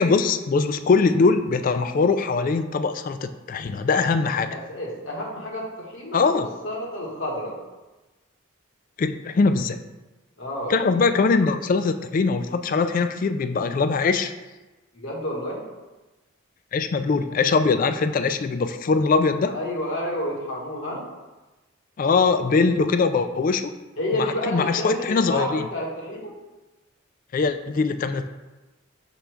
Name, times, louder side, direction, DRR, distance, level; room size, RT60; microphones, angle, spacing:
voice 1, 0.0-4.5 6.1-6.5 9.0-9.8 10.7-14.3 16.7-19.6 22.0-23.7 24.5-25.6 27.3-28.3, left 4 dB, 40° left, 10 dB, 0.3 m, -22 dB
voice 2, 4.4-7.6 10.4-11.1 14.9-15.6 19.5-21.0 24.0-26.3, left 1 dB, 70° left, -3 dB, 1.6 m, -30 dB
5.7 x 5.0 x 3.4 m, 1.1 s
head